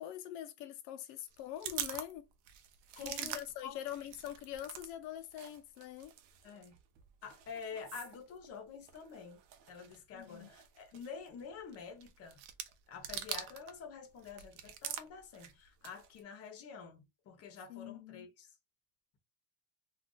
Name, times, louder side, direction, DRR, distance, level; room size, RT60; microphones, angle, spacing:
voice 1, 0.0-2.3 3.0-6.1 10.1-10.5 17.7-18.3, left 12 dB, 90° left, 0.6 m, -44 dB
sound 1, 1.3-4.9 5.2-13.8 14.1-16.2, right 10 dB, 90° right, 0.7 m, -46 dB
voice 2, 3.0-3.8 6.4-6.7 7.2-9.4 9.7-12.4 12.9-18.5, left 6 dB, 35° left, 0.7 m, -48 dB
2.4 x 2.4 x 3.7 m
cardioid pair, 160°, 43 cm